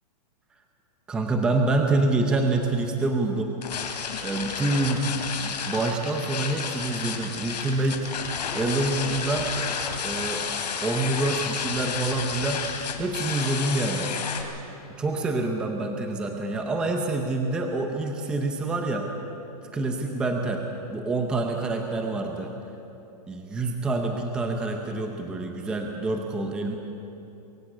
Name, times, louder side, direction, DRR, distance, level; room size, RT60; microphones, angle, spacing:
voice 1, 1.1-3.5 3.9-5.1 5.4-8.1 8.5-9.5 10.0-10.4 10.8-12.7 13.0-14.1 15.0-19.1 19.7-20.6 20.9-22.5 23.3-26.7, right 2 dB, 5° right, 3 dB, 0.6 m, -26 dB
sound 1, 3.6-14.4, left 6 dB, 80° left, 3.1 m, -31 dB
23.0 x 14.5 x 8.5 m, 2.9 s
hypercardioid pair, 180°, 21 cm